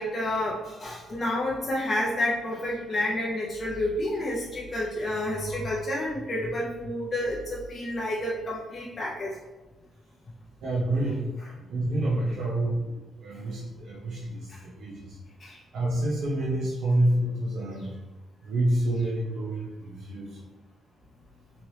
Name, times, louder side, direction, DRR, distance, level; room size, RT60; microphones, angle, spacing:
voice 1, 0.0-9.3 14.5-14.6 15.4-15.6, left 1 dB, 25° left, -5 dB, 0.4 m, -30 dB
voice 2, 10.6-11.2 11.6-12.9 13.2-15.2 15.7-18.0 18.4-20.3, right 1 dB, 65° right, -6 dB, 0.6 m, -28 dB
3.1 x 2.8 x 2.7 m, 1.2 s
cardioid pair, 175°, 0 cm